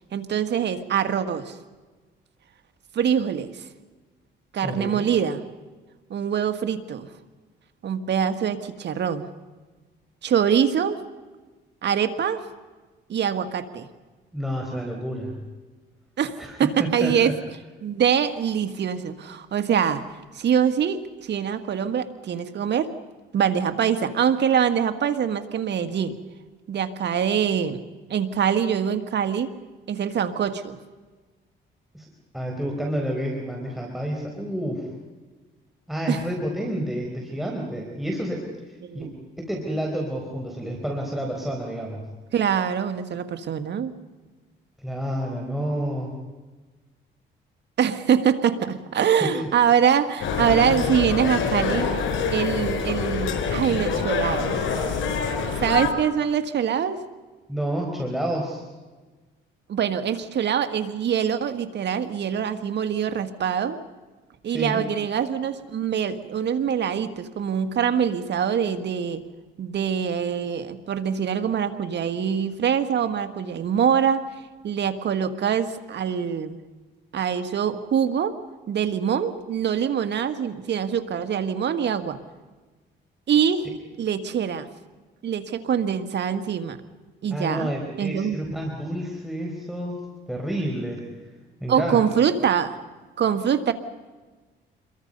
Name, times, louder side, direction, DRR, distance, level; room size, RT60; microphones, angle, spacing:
voice 1, 0.1-1.6 2.9-3.5 4.5-5.4 6.1-7.1 7.8-9.3 10.2-11.0 11.8-12.5 13.1-13.9 16.2-17.3 17.8-20.1 20.4-22.9 23.3-26.2 26.7-27.8 28.1-29.5 29.9-30.8 36.1-36.2 38.9-39.1 42.3-43.9 47.8-51.9 52.3-54.7 55.6-57.0 59.7-63.8 64.4-69.2 69.6-74.3 74.6-76.6 77.1-78.4 78.7-82.2 83.3-83.7 84.0-84.7 85.2-86.8 87.2-87.7 88.0-88.4 91.7-92.8 93.2-93.7, right 8 dB, 60° right, 9 dB, 1.9 m, -24 dB
voice 2, 4.6-5.0 14.3-15.4 16.4-17.4 31.9-32.1 32.3-34.9 35.9-42.0 44.8-46.1 49.2-49.5 57.5-58.6 64.5-64.8 87.3-90.0 90.3-91.0 91.6-92.0, equal, ahead, -1 dB, 4.5 m, -29 dB
sound 1, 50.2-55.9, left 5 dB, 80° left, 4.6 m, -25 dB
27.5 x 22.5 x 5.5 m, 1.3 s
cardioid pair, 90°, 20 cm